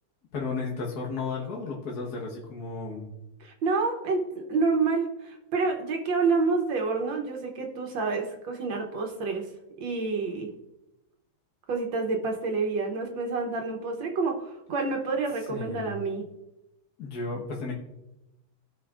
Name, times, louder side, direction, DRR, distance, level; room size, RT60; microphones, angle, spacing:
voice 1, 0.3-3.1 15.5-16.0 17.0-17.7, left 4 dB, 55° left, -3 dB, 1.6 m, -34 dB
voice 2, 3.4-9.5 9.8-10.5 11.7-16.2, right 4 dB, 70° right, 3 dB, 1.6 m, -28 dB
16.5 x 5.6 x 2.4 m, 0.94 s
omnidirectional pair, 2.2 m